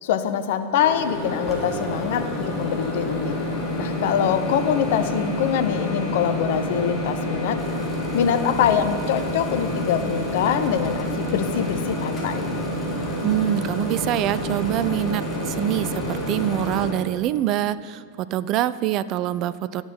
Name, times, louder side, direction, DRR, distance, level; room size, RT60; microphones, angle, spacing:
voice 1, 0.0-3.3 3.8-7.6 8.1-12.4, left 8 dB, 55° left, 10 dB, 0.6 m, -24 dB
Microwave oven, 0.7-17.0, left 1 dB, 25° left, 1.9 m, -28 dB
sound 1, 7.6-16.9, equal, ahead, 1.5 m, -40 dB
voice 2, 13.2-19.8, right 12 dB, 40° right, 15 dB, 0.3 m, -25 dB
10.5 x 7.2 x 5.4 m, 2.1 s
figure-of-eight pair, 90°, 0 cm